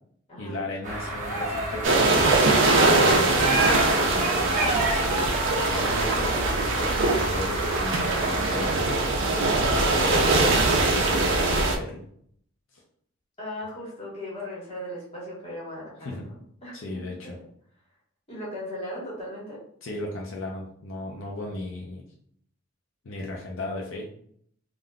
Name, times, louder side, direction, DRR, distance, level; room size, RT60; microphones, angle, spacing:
voice 1, 0.4-3.7 4.0-4.7 5.5-8.9 9.5-12.0 12.7-12.8 16.0-16.3 16.7-17.4 19.8-22.0 23.0-24.1, left 2 dB, 75° left, -2 dB, 0.6 m, -35 dB
sound 1, 0.8-8.8, right 2 dB, 40° right, 1.0 m, -30 dB
sound 2, 1.8-11.8, right 2 dB, 65° right, 0.5 m, -22 dB
voice 2, 13.4-16.8 17.2-17.3 18.3-19.6, left 1 dB, 30° left, -6 dB, 1.3 m, -37 dB
3.6 x 2.4 x 2.3 m, 0.64 s
head